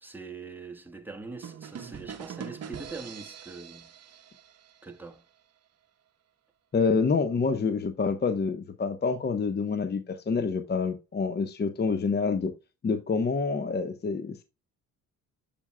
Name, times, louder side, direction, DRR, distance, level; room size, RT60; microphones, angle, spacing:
voice 1, 0.0-4.2 4.8-5.2, right 4 dB, 5° right, 1.3 m, -43 dB
sound 1, 1.4-5.2, right 7 dB, 45° right, 0.9 m, -43 dB
voice 2, 6.7-12.5 12.8-14.4, left 5 dB, 25° left, 0.8 m, -27 dB
7.0 x 7.0 x 2.2 m
supercardioid pair, 75°, 37 cm